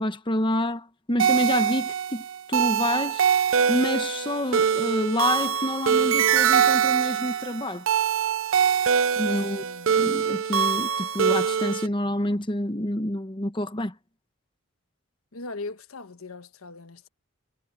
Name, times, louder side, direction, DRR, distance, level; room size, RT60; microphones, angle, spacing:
voice 1, 0.0-3.3 3.7-7.9 9.2-9.6 9.9-13.9, left 1 dB, 25° left, 1.2 m, -28 dB
sound 1, 1.2-11.9, right 7 dB, 70° right, 0.5 m, -23 dB
voice 2, 9.3-9.9 15.3-17.1, left 3 dB, 90° left, 1.3 m, -39 dB
head